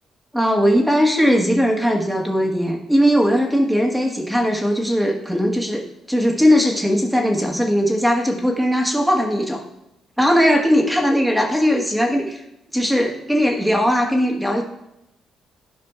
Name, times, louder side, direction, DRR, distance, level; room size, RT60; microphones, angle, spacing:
voice 1, 0.3-9.6 10.2-12.4 12.7-14.6, equal, 5° right, 1 dB, 1.5 m, -19 dB
12.0 x 5.0 x 2.4 m, 0.84 s
cardioid pair, 90°, 0 cm